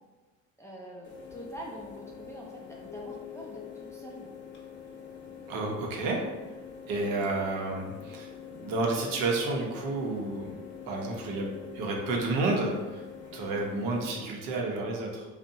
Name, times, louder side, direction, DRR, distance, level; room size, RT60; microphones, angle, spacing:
voice 1, 0.6-4.3, right 1 dB, 10° left, -4 dB, 0.4 m, -44 dB
sound 1, 1.0-14.2, left 7 dB, 30° left, 0.8 m, -45 dB
Keyboard (musical), 2.9-5.8, left 10 dB, 75° left, 0.6 m, -49 dB
voice 2, 5.5-6.2 6.9-10.5 10.9-11.5 11.7-13.0 13.3-15.3, right 2 dB, 65° right, 0 dB, 0.7 m, -30 dB
2.6 x 2.1 x 2.6 m, 1.3 s
supercardioid pair, 75°, 37 cm